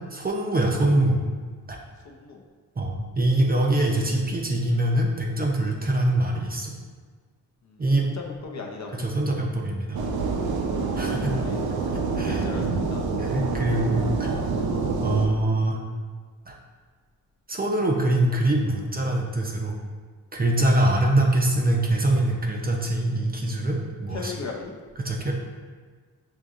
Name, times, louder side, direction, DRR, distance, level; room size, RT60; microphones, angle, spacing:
voice 1, 0.1-1.2 1.7-1.8 2.8-6.8 7.8-8.1 8.9-10.0 11.0-11.4 12.2-12.4 13.2-14.3 15.0-15.8 16.5-16.6 17.5-19.8 20.3-24.3 25.0-25.3, right 1 dB, 25° right, 0 dB, 0.5 m, -23 dB
voice 2, 2.0-2.4 8.1-9.1 11.4-11.6 12.3-13.0 24.1-24.7, left 4 dB, 50° left, 1 dB, 0.6 m, -36 dB
sound 1, 9.9-15.3, right 4 dB, 75° right, 0.6 m, -27 dB
5.3 x 2.8 x 2.4 m, 1.5 s
cardioid pair, 75°, 37 cm